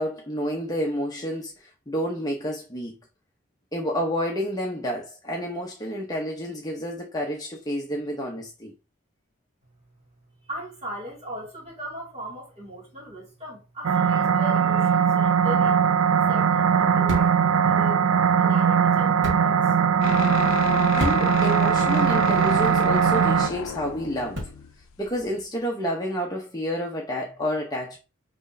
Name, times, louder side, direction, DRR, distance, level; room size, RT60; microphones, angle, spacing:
voice 1, 0.0-3.0 3.7-8.7 20.9-24.5 25.0-28.0, equal, 20° left, 0.8 m, -29 dB
voice 2, 10.4-15.8 16.3-18.1 18.4-19.7, equal, 30° right, 2.4 m, -38 dB
sound 1, 13.8-23.5, right 7 dB, 80° right, 0.4 m, -20 dB
sound 2, 15.8-24.9, equal, 60° right, 1.5 m, -38 dB
sound 3, 20.0-25.4, left 7 dB, 90° left, 0.5 m, -32 dB
6.1 x 3.1 x 2.7 m
head